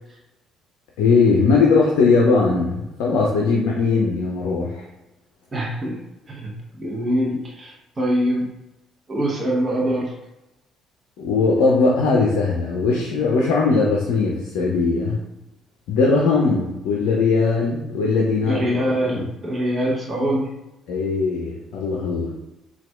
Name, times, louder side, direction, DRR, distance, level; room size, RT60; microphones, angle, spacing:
voice 1, 1.0-4.8 11.2-15.2 15.9-18.6 19.1-19.3 20.9-22.3, left 4 dB, 70° left, -2 dB, 0.4 m, -19 dB
voice 2, 5.5-6.0 6.3-6.5 6.8-8.5 9.1-10.1 18.5-20.5, equal, 35° right, -3 dB, 0.8 m, -23 dB
4.1 x 2.3 x 2.3 m, 0.94 s
hypercardioid pair, 50°, 0 cm